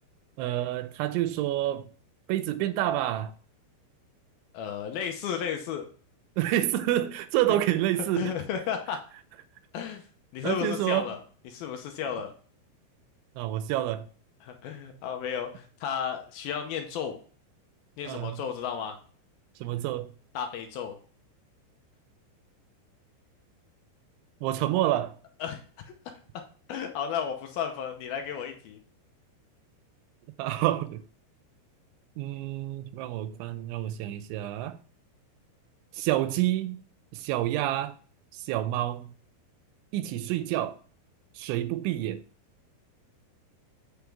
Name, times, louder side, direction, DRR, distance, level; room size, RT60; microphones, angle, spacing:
voice 1, 0.4-1.9 2.3-3.3 6.4-8.3 10.4-11.1 13.4-14.1 18.1-18.4 19.6-20.1 24.4-25.2 30.4-31.0 32.2-34.8 35.9-36.8 37.1-38.0 38.3-39.1 39.9-40.8 41.4-42.2, right 13 dB, 90° right, 3.0 m, -28 dB
voice 2, 4.5-5.9 7.5-7.6 8.2-9.0 9.7-10.1 10.3-11.2 11.5-12.3 14.4-17.2 18.0-19.0 20.4-21.0 25.4-25.6 26.3-26.4 26.7-28.8, left 8 dB, 80° left, 2.2 m, -33 dB
8.0 x 6.7 x 3.5 m
omnidirectional pair, 5.3 m